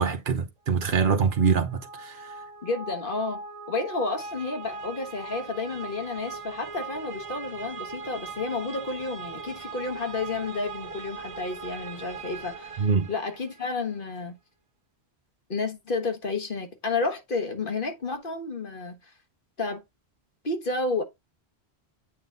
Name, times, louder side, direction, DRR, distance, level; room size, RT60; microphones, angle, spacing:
voice 1, 0.0-2.2 12.8-13.1, right 5 dB, 55° right, 1.0 m, -24 dB
sound 1, 0.8-13.6, right 4 dB, 40° right, 0.6 m, -40 dB
voice 2, 2.6-14.3 15.5-19.1 19.6-19.8 20.4-21.0, left 3 dB, 55° left, 1.5 m, -31 dB
8.4 x 3.9 x 3.9 m
omnidirectional pair, 1.1 m